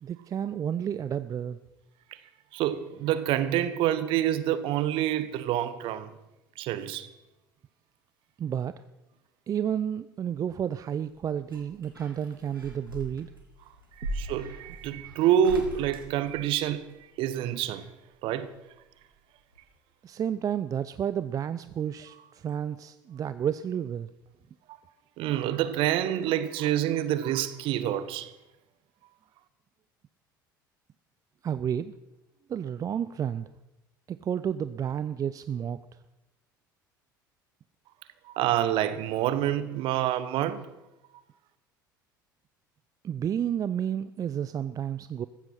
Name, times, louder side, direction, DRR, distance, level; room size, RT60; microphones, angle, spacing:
voice 1, 0.0-1.6 8.4-8.8 9.5-13.3 20.0-24.1 31.4-31.9 32.5-33.5 34.1-35.8 43.0-45.3, right 9 dB, 30° right, 0.6 m, -31 dB
voice 2, 2.5-6.1 6.6-7.1 14.0-16.9 17.2-17.9 18.2-18.5 24.7-24.8 25.2-28.3 38.2-40.7, right 11 dB, 50° right, 1.2 m, -27 dB
sound 1, 11.1-17.0 18.4-19.2 19.5-19.6, right 1 dB, 90° right, 3.0 m, -41 dB
15.0 x 15.0 x 5.8 m
figure-of-eight pair, 65°, 11 cm